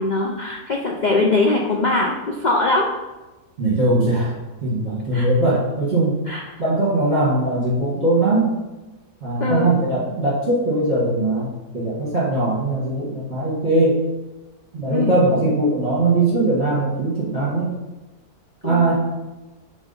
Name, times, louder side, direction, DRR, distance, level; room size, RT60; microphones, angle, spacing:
voice 1, 0.0-2.9 5.1-5.3 6.3-6.4 9.4-9.7 14.9-15.1 18.6-18.9, left 3 dB, 90° left, 0 dB, 0.4 m, -21 dB
voice 2, 3.6-4.3 4.6-6.1 6.6-8.5 9.2-14.0 14.7-17.7 18.6-18.9, right 2 dB, 45° right, -8 dB, 1.7 m, -20 dB
7.1 x 3.9 x 3.9 m, 1.1 s
omnidirectional pair, 1.6 m